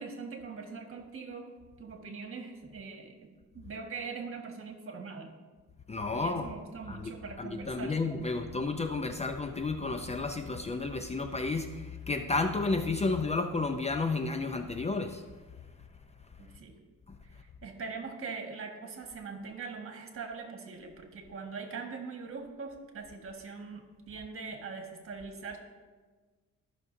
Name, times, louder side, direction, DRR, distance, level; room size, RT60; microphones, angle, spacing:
voice 1, 0.0-1.5 1.8-3.3 3.5-5.3 6.1-8.1 16.4-16.8 17.2-25.6, right 4 dB, 45° right, 3 dB, 1.6 m, -42 dB
voice 2, 5.9-6.5 6.9-7.1 7.4-15.2 17.1-17.2, left 3 dB, 20° left, 6 dB, 0.5 m, -32 dB
15.0 x 6.0 x 2.7 m, 1.4 s
cardioid pair, 90°, 30 cm